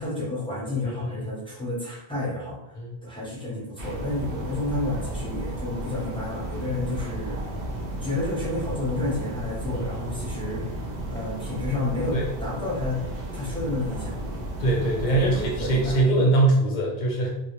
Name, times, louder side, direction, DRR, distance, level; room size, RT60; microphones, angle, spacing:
voice 1, 0.0-7.4 8.0-10.6 11.1-13.0 13.3-14.2 15.1-16.1, left 2 dB, 5° left, -7 dB, 0.5 m, -31 dB
voice 2, 0.8-1.2 2.8-3.0 9.7-9.9 10.2-10.3 12.1-12.2 14.6-17.3, right 2 dB, 55° left, -1 dB, 0.6 m, -23 dB
sound 1, 3.8-16.1, right 1 dB, 65° right, 0.7 m, -33 dB
2.1 x 2.0 x 2.9 m, 0.87 s
omnidirectional pair, 1.1 m